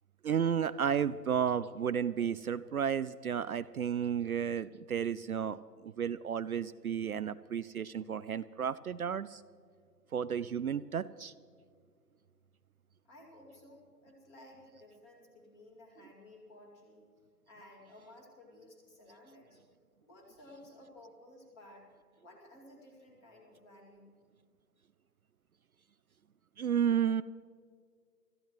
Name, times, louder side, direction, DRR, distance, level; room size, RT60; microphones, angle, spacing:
voice 1, 0.2-9.4 10.1-11.3 26.6-27.2, right 8 dB, 65° right, 14 dB, 0.5 m, -32 dB
voice 2, 13.0-17.1 17.5-19.6 20.0-21.9 22.2-24.1, left 1 dB, 20° left, 1 dB, 2.4 m, -56 dB
25.0 x 14.0 x 3.1 m, 2.2 s
figure-of-eight pair, 145°, 49 cm